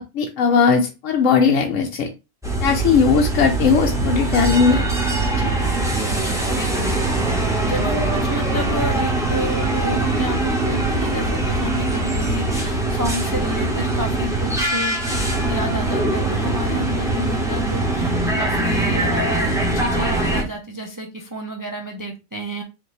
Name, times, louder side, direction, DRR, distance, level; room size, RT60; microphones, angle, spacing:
voice 1, 0.1-2.1 2.6-4.8 5.4-5.5, left 5 dB, 80° left, 2 dB, 1.0 m, -18 dB
sound 1, 2.4-20.4, right 2 dB, 5° right, 0.9 m, -22 dB
voice 2, 6.1-6.9 7.6-22.6, equal, 35° right, 2 dB, 0.3 m, -30 dB
5.0 x 2.6 x 3.2 m, 0.27 s
omnidirectional pair, 1.4 m